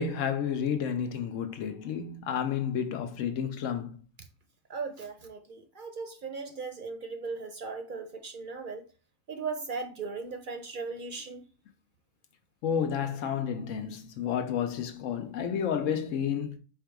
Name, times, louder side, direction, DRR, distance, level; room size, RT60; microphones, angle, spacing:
voice 1, 0.0-4.0 12.6-16.6, left 7 dB, 85° left, 1.0 m, -31 dB
voice 2, 4.7-8.8 9.3-11.4, right 4 dB, 55° right, 0.6 m, -37 dB
4.6 x 2.3 x 4.6 m
omnidirectional pair, 1.3 m